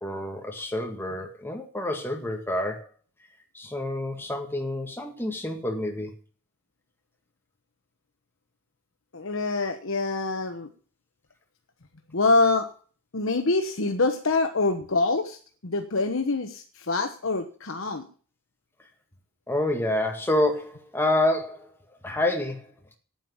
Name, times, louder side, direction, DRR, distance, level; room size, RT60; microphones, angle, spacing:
voice 1, 0.0-2.9 3.5-6.1 19.5-21.7 22.0-22.7, left 1 dB, 10° left, 3 dB, 1.9 m, -28 dB
voice 2, 9.1-10.7 12.1-12.7 13.1-18.1, left 3 dB, 75° left, 5 dB, 1.2 m, -25 dB
9.1 x 9.0 x 7.3 m, 0.41 s
head